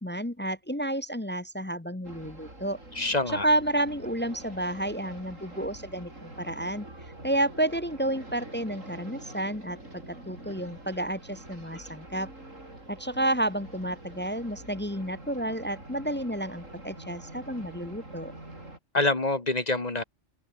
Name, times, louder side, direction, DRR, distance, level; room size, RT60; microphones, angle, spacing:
voice 1, 0.0-2.8 3.4-6.9 7.2-12.3 12.9-18.3, right 1 dB, 10° left, 0.7 m, -30 dB
sound 1, 2.0-18.8, right 1 dB, 90° right, 7.6 m, -46 dB
voice 2, 2.9-3.5 18.9-20.0, left 2 dB, 35° left, 2.1 m, -26 dB
open air
omnidirectional pair, 1.3 m